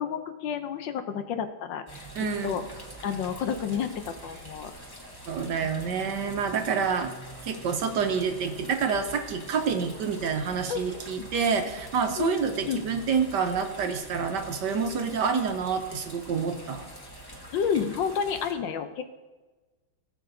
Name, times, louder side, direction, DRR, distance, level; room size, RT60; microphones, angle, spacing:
voice 1, 0.0-2.6 3.0-4.7 10.7-11.3 12.2-12.8 17.5-19.1, left 7 dB, 70° left, 8 dB, 1.3 m, -31 dB
sound 1, 1.9-18.5, right 1 dB, 15° left, 0.9 m, -45 dB
voice 2, 2.1-2.7 5.3-7.1 7.4-16.9, right 6 dB, 65° right, 5 dB, 1.3 m, -28 dB
17.0 x 7.5 x 2.6 m, 1.2 s
omnidirectional pair, 2.2 m